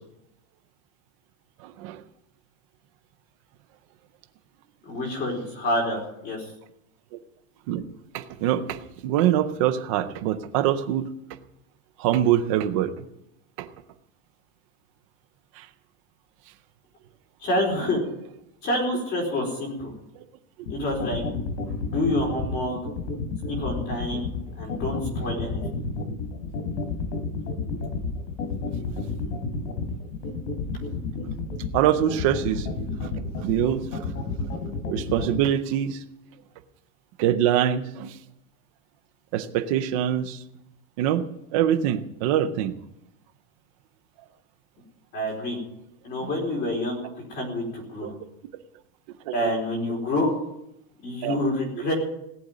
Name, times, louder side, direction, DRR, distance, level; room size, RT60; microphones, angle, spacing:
voice 1, 1.6-2.0 7.7-7.8 8.1-11.1 12.0-12.9 13.6-13.7 15.6-15.7 31.7-32.7 33.4-33.8 34.9-36.0 37.2-38.1 39.3-40.4 41.0-42.7 48.0-48.1 49.3-49.4 51.2-51.4, right 11 dB, 25° right, 10 dB, 0.5 m, -24 dB
voice 2, 4.8-6.5 17.4-18.0 18.6-19.9 20.7-21.2 21.8-22.8 23.4-24.3 24.6-25.6 45.1-45.6 46.0-47.0 47.3-48.1 49.3-50.3 51.0-51.9, left 1 dB, 25° left, 0 dB, 4.3 m, -27 dB
sound 1, 20.7-35.4, left 4 dB, 85° left, 3.4 m, -30 dB
17.5 x 7.8 x 9.2 m, 0.82 s
supercardioid pair, 180°, 45 cm